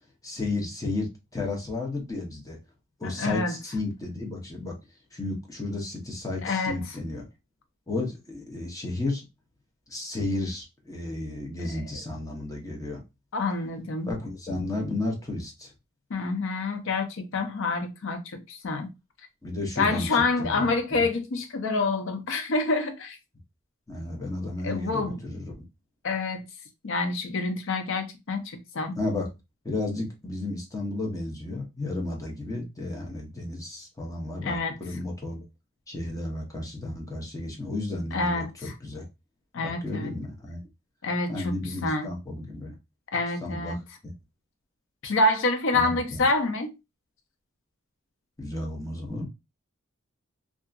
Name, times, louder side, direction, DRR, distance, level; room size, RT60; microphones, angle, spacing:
voice 1, 0.2-2.6 3.0-4.8 5.1-7.3 7.9-9.2 9.9-13.0 14.0-15.7 19.4-21.1 23.9-25.5 29.0-29.3 29.6-35.4 35.9-39.0 39.6-40.6 41.3-42.7 43.4-43.8 45.7-46.3 48.4-49.3, left 2 dB, 15° left, 0.7 m, -33 dB
voice 2, 3.0-3.5 6.4-6.8 13.3-14.1 16.1-18.9 19.8-23.2 24.6-25.2 26.0-26.4 26.8-29.0 34.4-34.7 38.1-38.7 39.5-40.1 41.0-41.5 41.8-42.1 43.1-43.8 45.0-46.8, left 3 dB, 65° left, 0.5 m, -27 dB
2.7 x 2.4 x 2.3 m
head